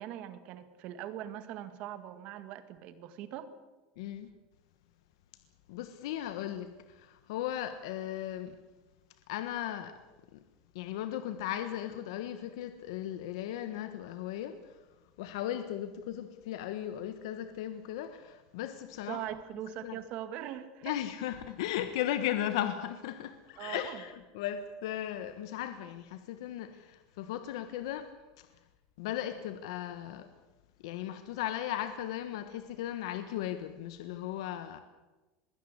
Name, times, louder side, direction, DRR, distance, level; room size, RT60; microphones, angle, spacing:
voice 1, 0.0-3.5 19.0-20.9 23.6-24.0, right 11 dB, 50° right, 12 dB, 1.8 m, -41 dB
voice 2, 4.0-4.3 5.7-8.5 9.3-10.0 10.3-10.4 10.7-14.7 15.2-19.3 19.8-20.0 20.8-28.1 28.4-28.5 29.0-30.3 30.8-34.8, left 11 dB, 80° left, 10 dB, 1.4 m, -36 dB
22.0 x 16.5 x 8.2 m, 1.1 s
cardioid pair, 160°, 3 cm